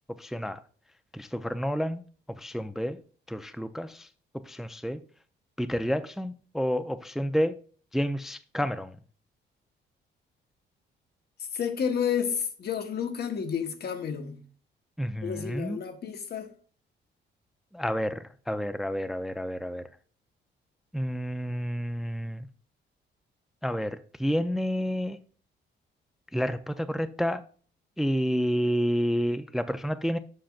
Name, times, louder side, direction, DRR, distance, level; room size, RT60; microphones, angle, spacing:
voice 1, 0.2-0.6 1.1-2.0 2.4-3.0 3.3-4.1 4.5-5.0 5.6-7.6 7.9-8.9 15.0-15.8 17.7-19.8 20.9-22.5 23.6-25.2 26.3-27.4 28.0-30.2, equal, ahead, 0.4 m, -29 dB
voice 2, 11.5-14.4 15.2-16.5, left 7 dB, 55° left, 1.1 m, -30 dB
7.6 x 5.7 x 2.4 m
cardioid pair, 90°, 20 cm